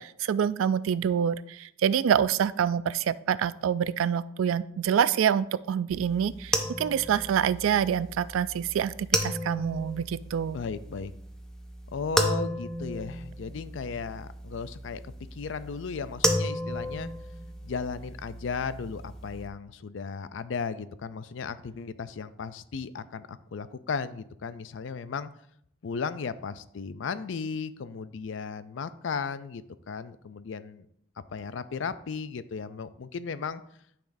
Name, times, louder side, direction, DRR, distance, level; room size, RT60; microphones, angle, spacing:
voice 1, 0.0-10.6, right 8 dB, 90° right, 18 dB, 0.3 m, -26 dB
sound 1, 5.9-19.5, equal, 5° left, 0.6 m, -34 dB
voice 2, 10.5-11.1 11.9-17.1 17.6-25.3 25.8-30.9 31.3-33.6, left 5 dB, 70° left, 14 dB, 0.4 m, -35 dB
10.0 x 5.9 x 2.6 m, 0.71 s
head